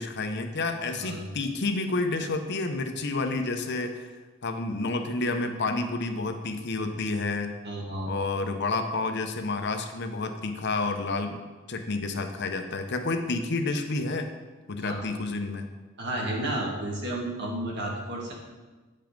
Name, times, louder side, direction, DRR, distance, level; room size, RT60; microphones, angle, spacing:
voice 1, 0.0-4.1 4.4-7.5 8.1-11.4 11.7-14.3 14.7-15.7, left 3 dB, 55° left, 6 dB, 0.8 m, -29 dB
voice 2, 0.9-1.2 7.6-8.1 14.8-15.0 16.0-18.3, right 1 dB, 55° right, -2 dB, 2.0 m, -32 dB
9.0 x 5.5 x 5.2 m, 1.3 s
head